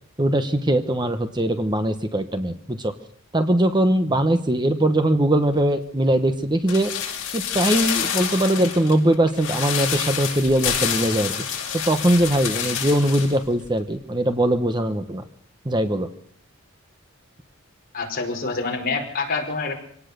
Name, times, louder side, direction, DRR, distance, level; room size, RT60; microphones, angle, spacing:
voice 1, 0.2-2.9 3.3-6.9 7.3-11.3 11.7-15.2 15.6-16.1, right 1 dB, 20° right, 8 dB, 1.1 m, -21 dB
sound 1, 6.7-13.4 13.6-13.7, left 8 dB, 60° left, 6.8 m, -27 dB
voice 2, 17.9-19.7, left 3 dB, 40° left, 0 dB, 5.0 m, -26 dB
25.5 x 18.0 x 6.7 m, 0.66 s
head